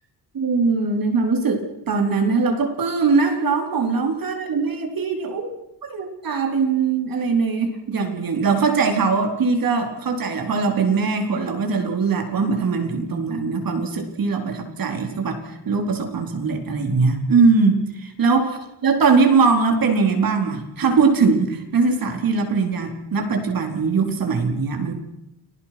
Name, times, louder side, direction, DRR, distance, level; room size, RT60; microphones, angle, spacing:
voice 1, 0.3-5.5 5.8-17.8 18.0-25.0, right 4 dB, 55° right, 5 dB, 4.4 m, -21 dB
29.5 x 20.5 x 6.1 m, 0.87 s
cardioid pair, 115°, 41 cm